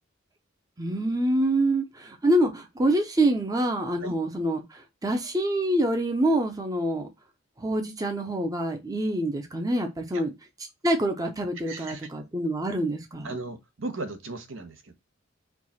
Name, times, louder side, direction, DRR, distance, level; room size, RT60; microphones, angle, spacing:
voice 1, 0.8-7.1 7.6-10.3 10.8-13.4, right 1 dB, 20° right, 0.6 m, -26 dB
voice 2, 11.6-12.0 13.2-14.9, right 2 dB, 75° right, 1.0 m, -36 dB
4.5 x 2.4 x 4.1 m
head